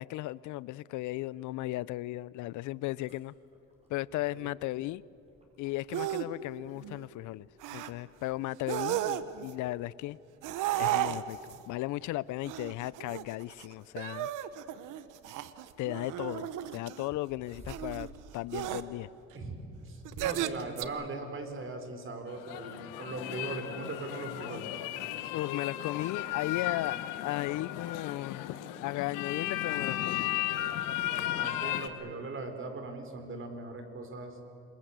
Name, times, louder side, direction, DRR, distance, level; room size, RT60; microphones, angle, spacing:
voice 1, 0.0-3.3 3.9-5.0 5.6-10.2 10.8-14.3 15.8-19.1 25.3-28.5 28.8-30.3, left 17 dB, 70° left, 21 dB, 0.5 m, -36 dB
sound 1, 2.7-19.9, right 1 dB, 20° right, 6.0 m, -59 dB
sound 2, 5.9-6.3 6.7-7.0 7.6-7.9 8.6-9.5 10.4-11.6 12.4-13.6 14.0-17.1 17.7-18.1 18.5-18.8 20.0-20.8, right 13 dB, 75° right, 1.1 m, -34 dB
voice 2, 19.3-24.8 31.3-34.4, right 3 dB, 40° right, 7 dB, 4.0 m, -40 dB
sound 3, 22.3-31.9, left 13 dB, 90° left, 1.3 m, -35 dB
27.0 x 21.5 x 8.1 m, 2.8 s
cardioid pair, 105°, 31 cm